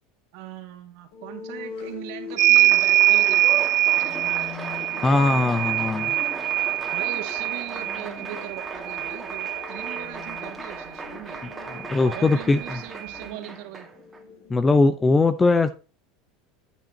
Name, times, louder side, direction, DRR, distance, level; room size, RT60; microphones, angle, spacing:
voice 1, 0.3-3.6 3.9-5.6 6.9-11.4 12.0-13.9, right 13 dB, 65° right, 2.1 m, -40 dB
sound 1, 1.1-14.8, left 4 dB, 70° left, 5.6 m, -42 dB
Applause, 2.3-14.2, right 3 dB, 15° right, 1.9 m, -37 dB
sound 2, 2.4-10.5 11.8-11.9 12.1-13.2, right 15 dB, 50° right, 0.3 m, -23 dB
voice 2, 5.0-6.1 11.7-12.8 14.5-15.7, left 3 dB, 20° left, 0.7 m, -20 dB
8.9 x 8.7 x 2.8 m
supercardioid pair, 110°, 0 cm